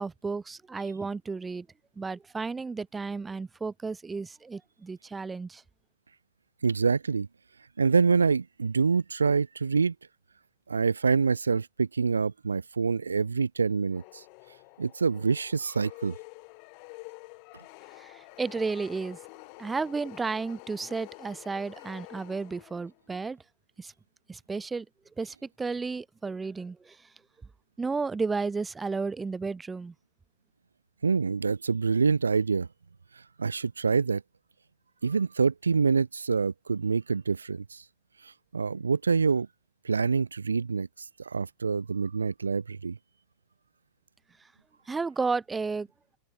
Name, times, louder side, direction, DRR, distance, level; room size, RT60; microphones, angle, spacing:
voice 1, 0.0-1.7 2.0-5.6 18.0-19.2 19.6-23.4 23.8-23.9 24.3-24.8 25.2-27.0 27.8-29.9 44.9-45.9, right 4 dB, 15° right, 4.7 m, -33 dB
voice 2, 6.6-7.3 7.8-9.9 10.7-14.2 14.8-16.1 31.0-32.7 33.1-34.2 35.0-37.8 38.2-39.5 39.8-43.0, right 5 dB, 75° right, 1.5 m, -26 dB
sound 1, 13.9-23.0, left 40 dB or more, 45° left, 5.0 m, -48 dB
open air
figure-of-eight pair, 90°, 0 cm